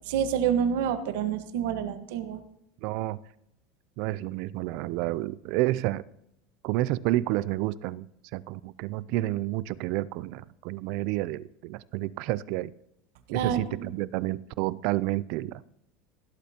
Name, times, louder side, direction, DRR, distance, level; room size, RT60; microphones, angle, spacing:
voice 1, 0.1-2.4 13.3-13.9, right 8 dB, 75° right, 9 dB, 1.3 m, -28 dB
voice 2, 2.8-3.2 4.0-6.0 6.6-8.1 8.3-12.7 13.3-15.6, right 17 dB, 55° right, 19 dB, 0.4 m, -30 dB
17.0 x 12.0 x 2.9 m, 0.78 s
supercardioid pair, 160°, 0 cm